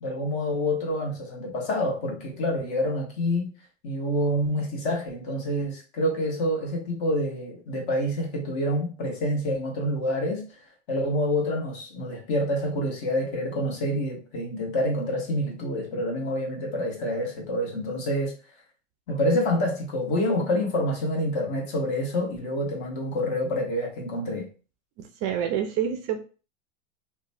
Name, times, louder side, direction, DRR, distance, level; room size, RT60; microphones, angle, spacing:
voice 1, 0.0-3.5 3.8-10.4 10.9-18.3 19.1-24.5, left 1 dB, 55° left, 1.2 m, -27 dB
voice 2, 25.0-26.2, right 9 dB, 40° right, 0.4 m, -27 dB
3.0 x 2.2 x 2.6 m
hypercardioid pair, 105°, 39 cm